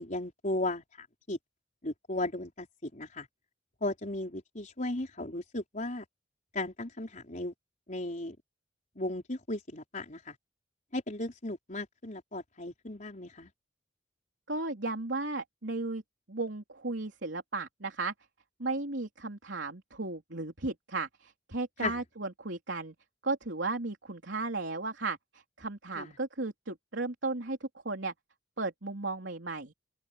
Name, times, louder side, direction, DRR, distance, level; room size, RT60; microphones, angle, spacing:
voice 1, 0.0-1.4 1.8-3.3 3.8-6.0 6.5-7.5 7.9-8.4 9.0-10.3 10.9-13.5 21.8-22.0 26.0-26.1, left 2 dB, 45° left, 4.6 m, -36 dB
voice 2, 14.5-16.0 16.3-18.1 18.6-22.9 23.2-25.2 25.6-28.1 28.6-29.7, right 3 dB, 75° right, 3.6 m, -35 dB
head